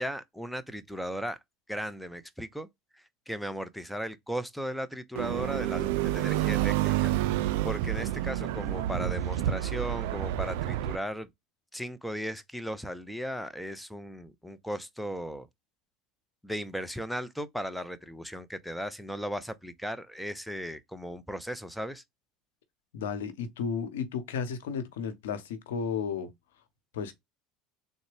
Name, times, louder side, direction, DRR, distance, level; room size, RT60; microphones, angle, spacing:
voice 1, 0.0-1.4 1.7-2.7 2.9-7.1 7.6-11.3 11.7-15.5 16.4-22.0, equal, ahead, 0.6 m, -36 dB
sound 1, 5.2-11.0, right 13 dB, 75° right, 0.3 m, -29 dB
voice 2, 22.9-26.3 26.9-27.2, left 6 dB, 80° left, 0.8 m, -33 dB
3.8 x 2.1 x 3.3 m
hypercardioid pair, 85°, 0 cm